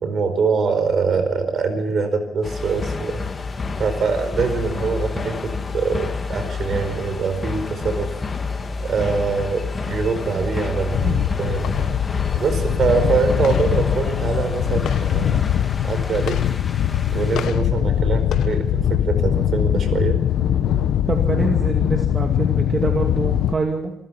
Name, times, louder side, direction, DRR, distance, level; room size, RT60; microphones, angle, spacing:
voice 1, 0.0-3.2 3.8-8.1 8.8-11.1 11.4-11.8 12.3-15.4 15.8-16.4 17.1-20.2, right 5 dB, 55° right, 9 dB, 4.8 m, -23 dB
sound 1, 2.4-17.5, left 4 dB, 30° left, 2.5 m, -29 dB
sound 2, 10.9-23.5, left 10 dB, 75° left, 1.1 m, -21 dB
voice 2, 21.1-23.9, right 3 dB, 30° right, 3 dB, 2.4 m, -25 dB
25.5 x 15.0 x 7.2 m, 0.85 s
cardioid pair, 90°, 0 cm